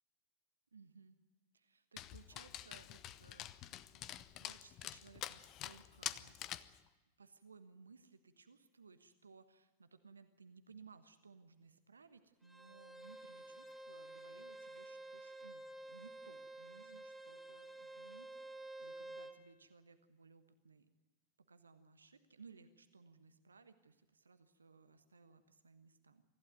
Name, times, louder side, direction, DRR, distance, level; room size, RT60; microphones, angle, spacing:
voice 1, 0.7-1.2 1.5-6.4 7.2-20.9 21.4-26.2, right 5 dB, 75° right, 10 dB, 1.2 m, -61 dB
Dog, 2.0-6.8, left 13 dB, 35° left, 0.9 m, -47 dB
Bowed string instrument, 12.4-19.4, right 2 dB, ahead, 1.9 m, -51 dB
25.0 x 15.0 x 9.3 m, 1.2 s
figure-of-eight pair, 90°, 0 cm